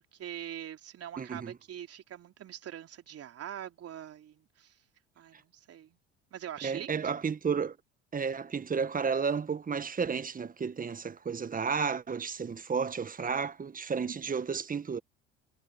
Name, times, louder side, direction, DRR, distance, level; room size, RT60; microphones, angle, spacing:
voice 1, 0.1-4.8 5.2-6.0 6.3-7.1 14.0-14.5, right 10 dB, 45° right, 3.5 m, -43 dB
voice 2, 1.2-1.5 6.6-7.8 8.1-15.0, right 5 dB, 25° right, 1.7 m, -32 dB
hypercardioid pair, 70°, 33 cm